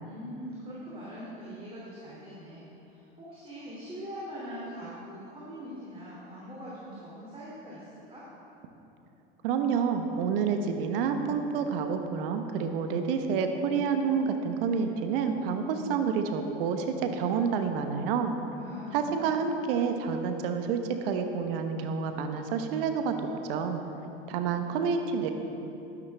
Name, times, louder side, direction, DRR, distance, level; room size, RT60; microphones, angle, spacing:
voice 1, 0.0-8.3 18.5-19.5, equal, 20° right, -8 dB, 2.7 m, -42 dB
voice 2, 9.4-18.3 18.9-23.2 23.5-23.8 24.3-25.3, right 6 dB, 70° right, 6 dB, 1.0 m, -28 dB
11.5 x 10.5 x 3.4 m, 3.0 s
hypercardioid pair, 90°, 29 cm